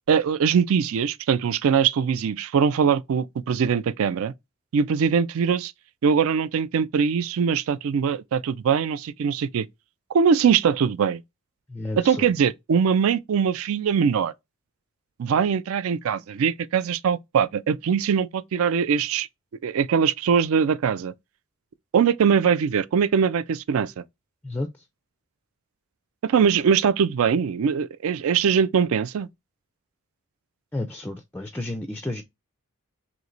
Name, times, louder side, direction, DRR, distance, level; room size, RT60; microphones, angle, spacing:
voice 1, 0.1-4.3 4.7-5.7 6.0-9.7 10.1-11.2 12.0-14.3 15.2-19.3 19.6-21.1 21.9-24.0 26.2-29.3, right 7 dB, 70° right, 0.3 m, -22 dB
voice 2, 11.7-12.3 24.4-24.7 30.7-32.2, left 2 dB, 10° left, 0.3 m, -31 dB
3.1 x 2.9 x 3.9 m
head